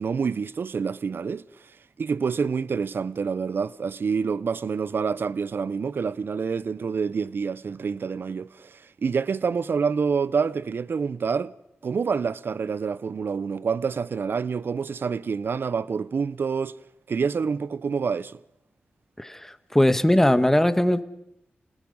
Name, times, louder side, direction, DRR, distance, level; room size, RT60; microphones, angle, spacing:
voice 1, 0.0-1.4 2.0-11.5 11.8-16.8 17.1-18.4, right 5 dB, 65° right, 0.7 m, -27 dB
voice 2, 19.7-21.0, left 1 dB, 10° left, 1.6 m, -19 dB
29.0 x 19.0 x 5.5 m
cardioid pair, 45°, 4 cm